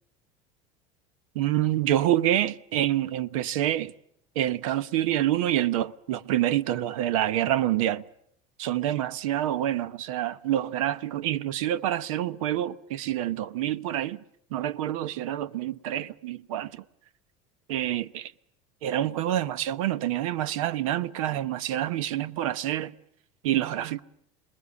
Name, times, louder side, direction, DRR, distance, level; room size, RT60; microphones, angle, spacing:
voice 1, 1.3-3.9 4.3-8.0 8.6-14.2 14.5-16.8 17.7-18.3 18.8-22.9 23.4-24.0, right 12 dB, 90° right, 1.0 m, -27 dB
27.5 x 21.0 x 8.4 m
supercardioid pair, 110°, 17 cm